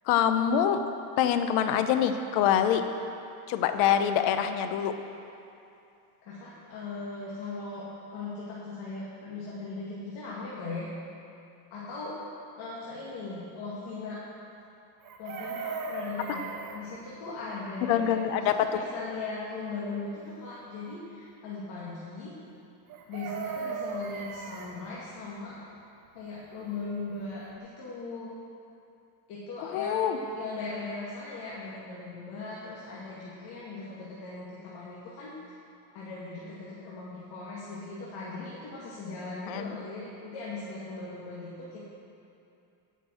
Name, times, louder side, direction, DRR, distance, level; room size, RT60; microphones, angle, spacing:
voice 1, 0.1-0.8 1.2-2.8 3.5-4.9 16.3-16.4 17.9-18.8 29.6-30.2 39.5-39.8, left 9 dB, 80° left, 9 dB, 0.8 m, -25 dB
voice 2, 6.3-10.9 11.7-12.2 12.6-14.2 15.2-16.5 16.7-22.3 23.1-25.6 26.1-28.3 29.3-35.4 35.9-41.8, left 3 dB, 60° left, -7 dB, 2.2 m, -39 dB
Chicken rooster, 15.0-16.8 22.9-24.7 26.9-27.0 27.3-27.6, right 4 dB, 45° right, 1.3 m, -37 dB
9.0 x 6.9 x 7.7 m, 2.7 s
supercardioid pair, 115°, 44 cm